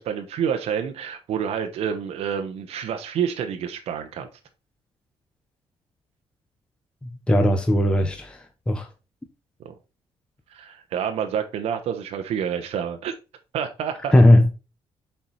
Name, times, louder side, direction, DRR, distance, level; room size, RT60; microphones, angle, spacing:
voice 1, 0.0-4.3 9.6-9.7 10.5-13.1 13.5-14.1, right 8 dB, 70° right, 0.9 m, -28 dB
voice 2, 7.0-8.9 14.1-14.5, left 1 dB, 10° left, 0.7 m, -18 dB
7.2 x 4.5 x 4.0 m
cardioid pair, 125°, 11 cm